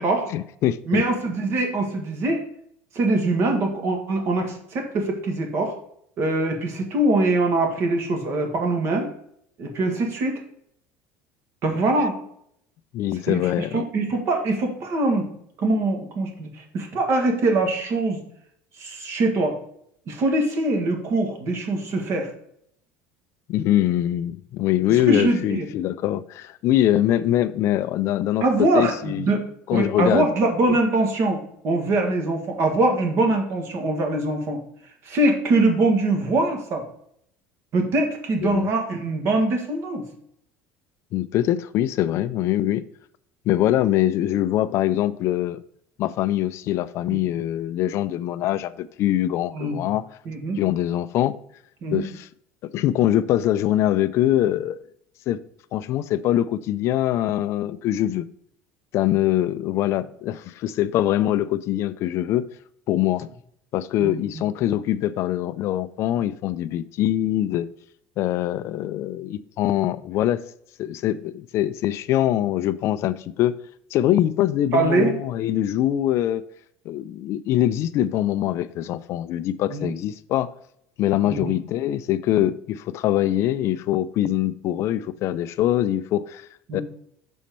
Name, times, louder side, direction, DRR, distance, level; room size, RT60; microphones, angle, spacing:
voice 1, 0.3-1.0 12.9-13.8 23.5-29.3 29.7-30.3 30.7-30.8 38.4-38.7 41.1-42.8 43.5-45.6 46.0-50.1 50.6-51.3 51.9-52.3 52.7-54.8 55.3-55.4 55.7-58.2 58.9-62.4 62.9-63.3 63.7-67.7 68.2-70.4 70.8-73.6 73.9-76.4 76.9-80.5 81.0-86.8, left 13 dB, 50° left, 0.4 m, -23 dB
voice 2, 0.9-2.4 2.9-5.8 6.2-9.1 9.6-10.4 11.6-12.2 13.3-15.3 15.6-18.2 18.8-19.6 20.1-22.3 25.1-25.7 28.4-29.4 29.7-34.6 35.0-36.8 37.7-40.1 47.1-47.2 49.5-49.9 50.3-50.6 51.8-52.0 64.0-64.1 74.7-75.1 79.7-79.9 81.3-81.5 86.7-86.8, right 2 dB, 45° right, 1.8 m, -23 dB
6.3 x 4.3 x 5.3 m
cardioid pair, 130°, 6 cm